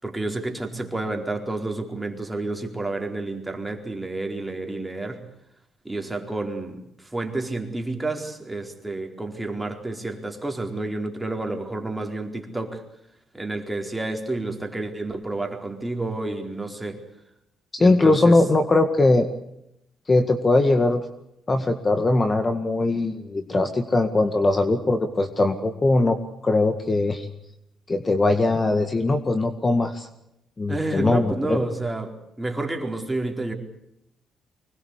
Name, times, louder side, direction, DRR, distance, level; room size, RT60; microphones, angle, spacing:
voice 1, 0.0-5.2 5.8-12.8 13.3-17.0 17.8-18.4 30.7-33.5, right 2 dB, 10° right, 3 dB, 4.4 m, -30 dB
voice 2, 17.7-19.3 20.1-21.1 21.5-26.2 26.4-27.3 27.9-30.1 30.6-31.6, left 2 dB, 30° left, 8 dB, 2.0 m, -20 dB
25.0 x 21.0 x 8.4 m, 0.81 s
cardioid pair, 90°, 0 cm